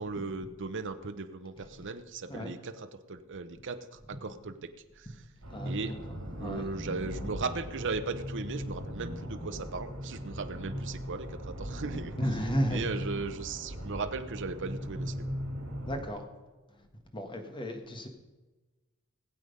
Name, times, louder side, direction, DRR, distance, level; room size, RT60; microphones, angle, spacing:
voice 1, 0.0-5.1 5.7-5.9 6.2-12.2 12.7-15.3, right 4 dB, 60° right, 0.8 m, -37 dB
sound 1, 5.4-16.1, equal, 80° right, 3.5 m, -39 dB
voice 2, 5.5-5.9 6.4-6.7 12.2-12.8 15.9-16.2 17.1-18.1, equal, 25° left, 1.6 m, -33 dB
19.5 x 8.0 x 5.3 m
head